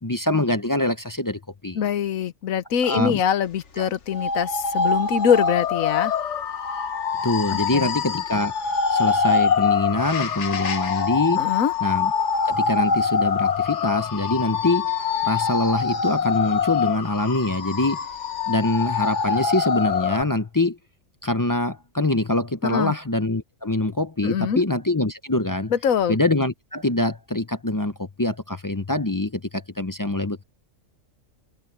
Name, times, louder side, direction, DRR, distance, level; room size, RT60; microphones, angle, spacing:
voice 1, 0.0-1.8 2.8-3.2 3.8-3.9 7.2-8.6 8.9-11.5 11.8-12.1 12.4-14.9 15.2-18.0 18.5-20.8 21.2-25.7 26.1-30.4, left 2 dB, 25° left, 0.5 m, -24 dB
voice 2, 1.7-6.1 7.5-7.9 11.4-11.7 22.6-22.9 24.2-24.6 25.7-26.2, left 8 dB, 85° left, 1.3 m, -23 dB
sound 1, 4.1-20.2, left 6 dB, 60° left, 1.5 m, -24 dB
omnidirectional pair, 1.4 m